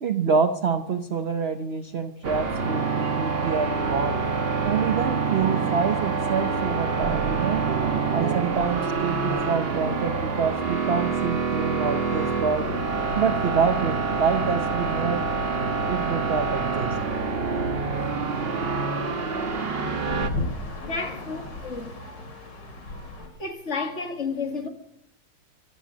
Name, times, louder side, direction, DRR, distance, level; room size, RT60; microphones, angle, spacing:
voice 1, 0.0-4.2 4.6-7.6 8.1-12.7 13.1-15.3 15.9-17.0, right 6 dB, 50° right, 0.8 m, -26 dB
sound 1, 2.2-20.3, right 4 dB, 35° right, 1.4 m, -26 dB
sound 2, 3.0-9.4, right 7 dB, 85° right, 1.7 m, -36 dB
sound 3, 11.9-23.3, left 2 dB, 70° left, 3.4 m, -38 dB
voice 2, 20.8-22.0 23.4-24.7, left 4 dB, 40° left, 2.0 m, -31 dB
16.5 x 13.0 x 6.2 m
omnidirectional pair, 2.0 m